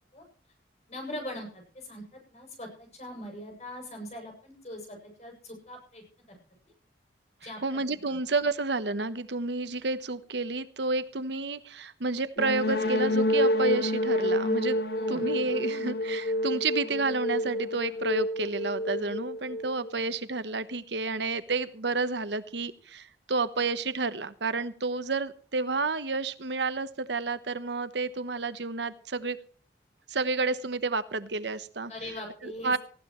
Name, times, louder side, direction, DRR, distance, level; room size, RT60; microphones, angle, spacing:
voice 1, 0.9-6.4 7.4-7.8 14.9-15.3 31.9-32.8, left 1 dB, 40° left, 2 dB, 7.7 m, -41 dB
voice 2, 7.6-14.8 15.1-29.4 30.1-31.9 32.4-32.8, right 3 dB, 75° right, 13 dB, 1.1 m, -30 dB
sound 1, 12.4-20.1, left 1 dB, 55° left, 1.9 m, -28 dB
19.5 x 15.5 x 3.2 m, 0.43 s
head